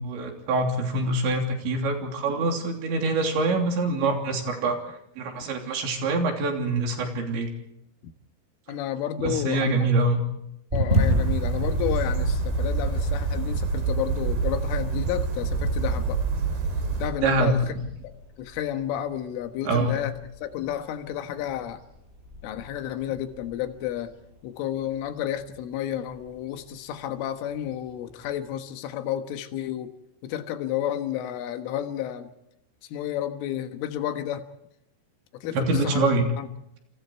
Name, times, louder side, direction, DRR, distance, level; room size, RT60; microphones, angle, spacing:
voice 1, 0.0-4.8 5.2-7.5 9.2-10.2 17.2-17.5 19.7-20.0 35.5-36.3, right 2 dB, 70° right, 2 dB, 5.3 m, -25 dB
voice 2, 8.7-9.9 10.7-16.2 17.0-17.6 18.4-20.1 20.4-21.8 22.4-24.1 24.4-29.9 30.2-32.3 32.9-34.4 35.3-36.1 36.4-36.5, left 11 dB, 85° left, 7 dB, 4.0 m, -31 dB
sound 1, 10.7-28.6, left 1 dB, 10° right, 5.9 m, -36 dB
sound 2, 10.9-17.1, right 4 dB, 55° right, 4.9 m, -26 dB
27.5 x 26.0 x 4.6 m, 0.81 s
omnidirectional pair, 5.5 m